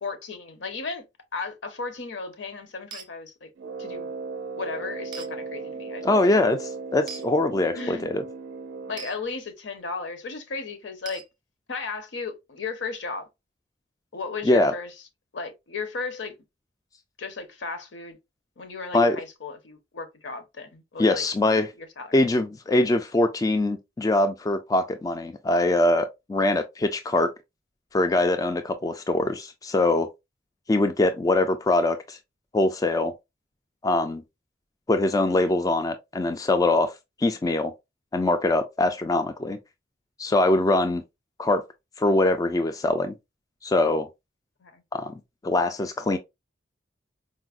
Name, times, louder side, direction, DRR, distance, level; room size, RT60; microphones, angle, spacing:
voice 1, 0.0-1.0 1.3-3.5 3.8-4.1 4.6-6.2 7.7-8.2 8.9-11.3 11.7-13.3 14.1-14.9 15.3-16.3 17.2-18.2 18.6-21.3 21.8-22.2 44.6-44.8, left 4 dB, 75° left, 0.8 m, -35 dB
sound 1, 2.9-3.1 5.1-5.3 7.1-7.3 9.0-9.1 11.0-11.3, right 5 dB, 25° right, 0.6 m, -39 dB
Brass instrument, 3.6-9.2, right 4 dB, 75° right, 0.4 m, -36 dB
voice 2, 6.0-8.2 14.4-14.7 18.9-19.2 21.0-21.7 22.1-27.3 27.9-30.1 30.7-32.2 32.5-33.1 33.8-34.2 34.9-36.9 37.2-37.7 38.1-39.6 40.2-41.0 41.4-41.6 42.0-43.1 43.6-44.1 44.9-45.1 45.4-46.2, left 2 dB, 20° left, 0.3 m, -23 dB
4.5 x 2.0 x 2.4 m
head